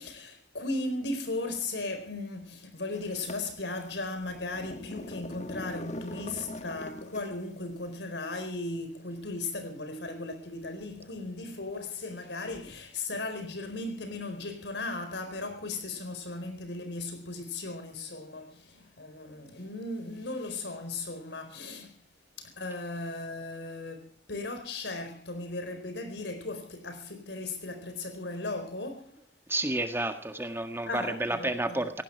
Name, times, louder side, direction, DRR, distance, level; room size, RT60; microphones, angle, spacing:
voice 1, 0.0-22.0 22.4-29.2 30.9-31.9, left 2 dB, 80° left, 4.5 m, -37 dB
sound 1, 2.9-7.6, left 1 dB, 40° left, 1.6 m, -42 dB
voice 2, 29.5-32.0, right 1 dB, 15° right, 1.7 m, -30 dB
18.0 x 17.0 x 4.6 m
head